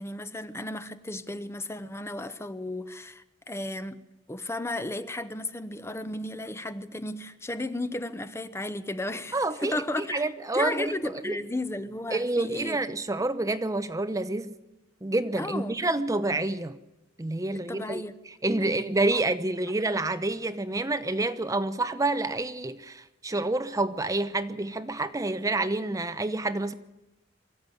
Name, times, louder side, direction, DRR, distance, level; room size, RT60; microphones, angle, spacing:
voice 1, 0.0-4.0 4.3-10.3 10.5-12.8 15.4-15.8 17.5-18.2 18.6-18.8 19.1-19.3, left 1 dB, 15° left, 0.8 m, -34 dB
voice 2, 9.3-9.8 10.1-10.9 11.2-11.4 12.1-14.5 15.0-16.8 17.2-18.0 18.4-26.7, right 2 dB, 20° right, 0.7 m, -28 dB
23.5 x 14.0 x 9.3 m
head